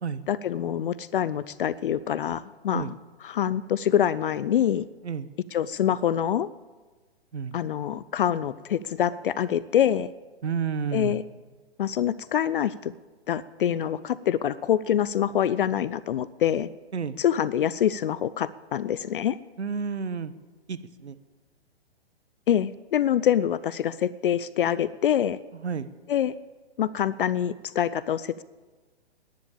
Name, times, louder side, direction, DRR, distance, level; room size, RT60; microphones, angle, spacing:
voice 1, 0.3-2.9 3.2-4.8 5.5-6.5 7.5-10.1 10.9-11.2 11.8-12.9 13.3-16.7 17.2-19.4 22.5-25.4 26.1-26.3 26.8-28.4, left 10 dB, 55° left, 18 dB, 0.6 m, -25 dB
voice 2, 10.4-11.2 16.9-17.2 19.6-20.3 20.7-21.2 25.6-25.9, right 6 dB, 80° right, 13 dB, 1.1 m, -30 dB
19.0 x 10.5 x 7.2 m, 1.3 s
figure-of-eight pair, 125°, 33 cm